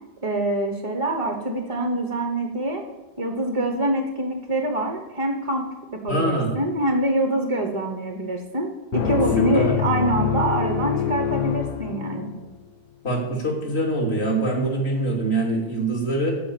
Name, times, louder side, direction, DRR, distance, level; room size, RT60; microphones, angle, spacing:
voice 1, 0.2-2.8 3.2-12.3, right 1 dB, 20° right, 3 dB, 0.9 m, -25 dB
voice 2, 6.1-6.6 9.4-9.8 13.0-16.3, right 1 dB, 35° left, -1 dB, 2.9 m, -24 dB
sound 1, 8.9-12.5, left 9 dB, 60° left, 1.3 m, -25 dB
14.0 x 5.2 x 8.5 m, 1.1 s
omnidirectional pair, 1.9 m